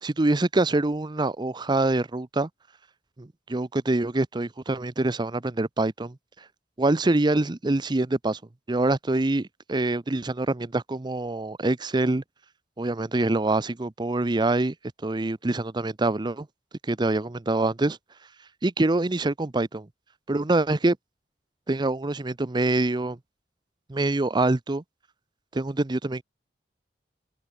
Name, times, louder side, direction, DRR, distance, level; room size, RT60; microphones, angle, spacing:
voice 1, 0.0-2.5 3.2-6.5 6.8-8.4 8.7-12.2 12.8-14.7 15.0-16.5 16.8-18.0 18.6-19.9 20.3-21.0 21.7-23.2 23.9-24.8 25.5-26.2, right 2 dB, 25° right, 0.6 m, -25 dB
head